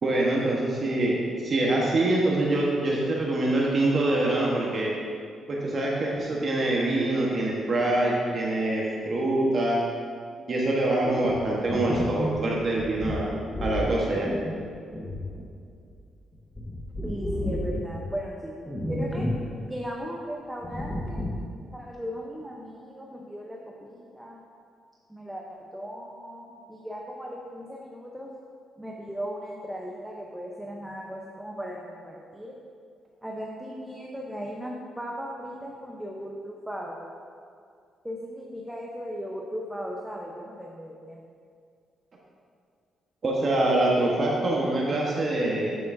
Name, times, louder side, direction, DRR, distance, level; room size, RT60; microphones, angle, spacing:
voice 1, 0.0-4.9 5.5-9.8 10.5-13.3 13.6-14.3 43.2-45.8, right 2 dB, 45° right, -3 dB, 1.2 m, -25 dB
sound 1, 11.0-16.0 16.3-18.2 18.7-19.5 19.8-19.9 20.6-21.5, equal, 15° left, 1.1 m, -32 dB
voice 2, 17.0-18.5 18.9-19.3 19.6-21.3 21.7-24.4 25.1-28.3 28.8-32.5 33.2-37.0 38.0-41.2, equal, 5° right, -2 dB, 0.7 m, -37 dB
8.3 x 7.7 x 2.6 m, 2.2 s
cardioid pair, 95°, 0 cm